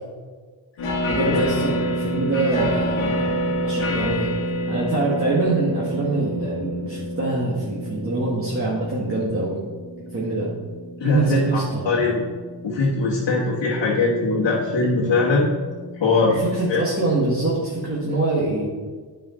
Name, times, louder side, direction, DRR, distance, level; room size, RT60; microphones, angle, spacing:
sound 1, 0.8-18.1, equal, 85° left, 1.5 m, -29 dB
voice 1, 1.1-4.3 4.7-9.6 10.1-10.5 11.0-12.0 16.4-18.7, right 2 dB, 30° right, -6 dB, 1.6 m, -24 dB
voice 2, 11.0-11.6 11.8-12.2 12.6-15.5 16.0-16.4 16.7-16.8, left 3 dB, 65° left, -4 dB, 1.4 m, -21 dB
8.6 x 5.0 x 3.8 m, 1.5 s
cardioid pair, 70°, 47 cm